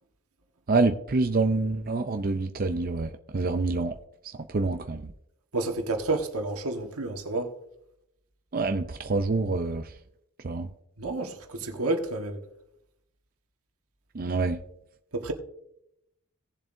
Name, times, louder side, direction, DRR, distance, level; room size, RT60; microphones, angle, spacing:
voice 1, 0.7-3.9 4.5-5.0 8.5-9.8 10.4-10.7 14.1-14.6, right 3 dB, 40° right, 0.5 m, -26 dB
voice 2, 5.5-7.5 11.0-12.4 15.1-15.3, right 2 dB, 90° right, 1.5 m, -30 dB
18.0 x 7.2 x 2.7 m
head